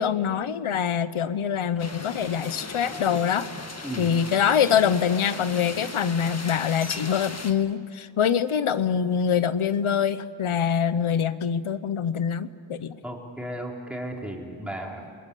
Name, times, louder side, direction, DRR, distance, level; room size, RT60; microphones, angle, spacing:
voice 1, 0.0-3.5 4.0-13.0, left 8 dB, 85° left, 14 dB, 0.9 m, -24 dB
sound 1, 1.8-7.5, left 3 dB, 30° left, 1.7 m, -37 dB
voice 2, 13.0-15.1, right 1 dB, ahead, -1 dB, 4.1 m, -35 dB
28.5 x 20.0 x 8.4 m, 2.3 s
cardioid pair, 60°, 49 cm